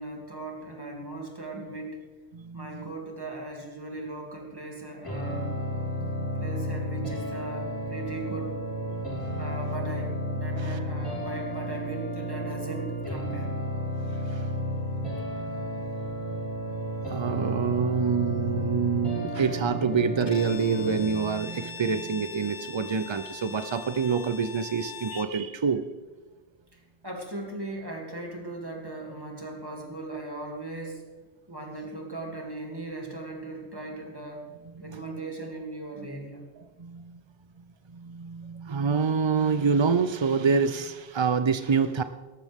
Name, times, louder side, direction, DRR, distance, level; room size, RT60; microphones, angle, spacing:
voice 1, 0.0-2.0 2.5-5.5 6.3-8.6 9.4-13.5 26.7-31.1 31.5-34.5 34.8-36.4, right 2 dB, 20° right, 0 dB, 2.7 m, -38 dB
voice 2, 2.3-2.9 5.9-6.3 8.9-9.6 10.5-10.8 14.0-14.5 15.3-16.2 17.1-25.9 34.9-35.2 36.6-37.2 37.6-42.0, right 5 dB, 50° right, 11 dB, 0.3 m, -27 dB
sound 1, 5.0-21.0, equal, 25° left, 3.5 m, -32 dB
Bowed string instrument, 20.2-25.4, left 6 dB, 50° left, 0.7 m, -42 dB
18.0 x 13.5 x 3.6 m, 1.3 s
omnidirectional pair, 1.1 m